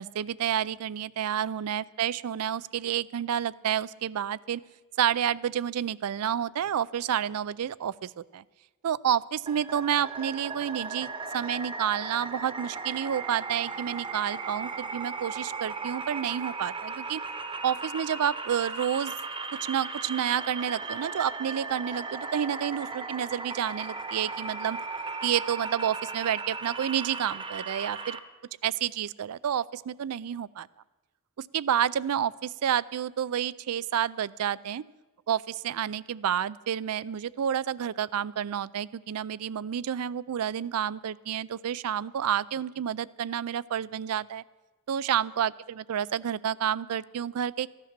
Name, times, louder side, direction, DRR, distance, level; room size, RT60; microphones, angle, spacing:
voice 1, 0.0-4.6 5.0-8.4 8.8-11.1 11.3-17.2 17.6-19.1 19.7-24.8 25.2-28.2 28.6-30.7 31.4-34.8 35.3-44.4 44.9-47.7, right 9 dB, 85° right, 20 dB, 0.4 m, -29 dB
sound 1, 9.5-28.2, right 4 dB, 25° right, 0.9 m, -37 dB
15.0 x 10.5 x 6.6 m, 1.2 s
head